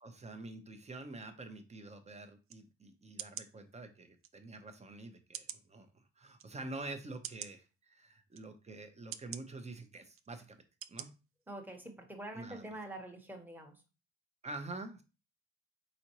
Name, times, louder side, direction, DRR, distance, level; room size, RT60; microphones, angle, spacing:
voice 1, 0.0-10.6 10.9-11.1 12.3-12.8 14.4-15.0, right 2 dB, 20° right, 8 dB, 0.8 m, -47 dB
sound 1, 2.5-2.6 3.2-3.5 4.2-4.3 5.3-5.7 6.4-6.5 7.2-7.5 8.3-8.4 9.1-9.4 10.1-10.3 10.8-11.1 11.5-11.6, right 9 dB, 45° right, 0.4 m, -44 dB
voice 2, 11.5-13.8, right 1 dB, 5° right, 3 dB, 1.1 m, -46 dB
4.1 x 3.8 x 3.0 m, 0.31 s
cardioid pair, 90°, 30 cm